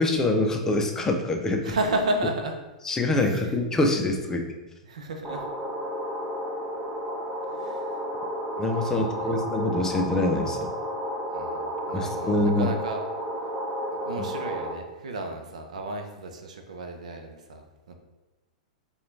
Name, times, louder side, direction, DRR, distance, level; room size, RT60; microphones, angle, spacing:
voice 1, 0.0-1.6 2.9-4.5 8.6-10.7 11.9-12.7, left 2 dB, 15° left, 3 dB, 0.5 m, -25 dB
voice 2, 1.6-2.6 3.1-3.6 4.8-5.5 7.5-8.0 8.9-9.4 11.3-11.6 11.9-13.0 13.9-17.9, right 2 dB, 70° right, 4 dB, 0.6 m, -33 dB
sound 1, 5.2-14.7, equal, 15° right, 0.8 m, -32 dB
4.8 x 2.3 x 3.2 m, 1.1 s
figure-of-eight pair, 100°, 4 cm